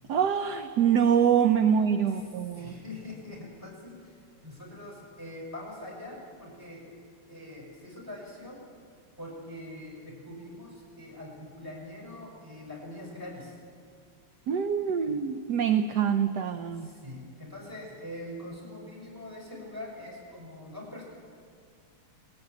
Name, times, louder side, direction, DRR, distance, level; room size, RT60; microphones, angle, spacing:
voice 1, 0.1-2.7 14.5-16.9, right 8 dB, 60° right, 8 dB, 1.2 m, -25 dB
voice 2, 2.5-6.9 7.3-8.6 9.2-13.6 16.8-21.0, left 1 dB, 10° right, -2 dB, 6.2 m, -43 dB
20.0 x 16.5 x 9.4 m, 2.1 s
omnidirectional pair, 2.4 m